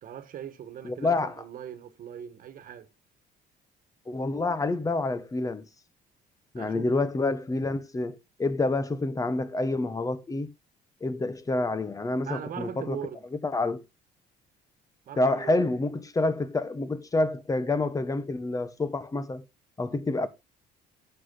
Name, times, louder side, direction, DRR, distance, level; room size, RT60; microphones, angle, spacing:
voice 1, 0.0-2.9 6.5-6.9 12.2-13.2 15.0-15.7, right 9 dB, 55° right, 1.5 m, -40 dB
voice 2, 0.8-1.3 4.1-5.6 6.5-10.5 11.0-13.0 13.4-13.8 15.2-19.4 19.8-20.3, left 2 dB, 20° left, 1.3 m, -28 dB
11.0 x 8.0 x 3.9 m
cardioid pair, 110°, 17 cm